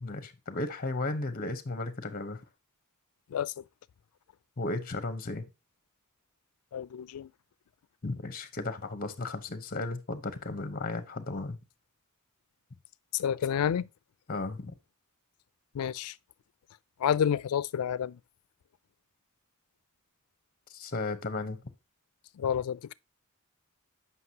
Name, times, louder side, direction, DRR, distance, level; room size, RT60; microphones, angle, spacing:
voice 1, 0.0-2.4 4.6-5.5 8.0-11.6 14.3-14.7 20.7-21.6, left 2 dB, 40° left, 0.8 m, -35 dB
voice 2, 3.3-3.6 6.7-7.3 13.1-13.9 15.7-16.1 17.0-18.2 22.4-22.9, left 8 dB, 85° left, 0.4 m, -29 dB
7.8 x 5.7 x 2.8 m
head